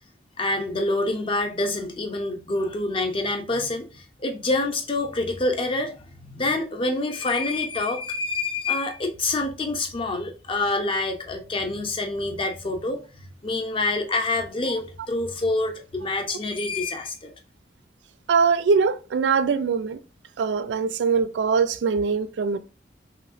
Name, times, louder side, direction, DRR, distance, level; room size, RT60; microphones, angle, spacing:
voice 1, 0.4-13.0 13.4-17.3, left 2 dB, 30° left, 0.5 m, -27 dB
voice 2, 18.3-20.0 20.4-22.6, right 5 dB, 90° right, 0.3 m, -22 dB
3.0 x 2.7 x 2.4 m
head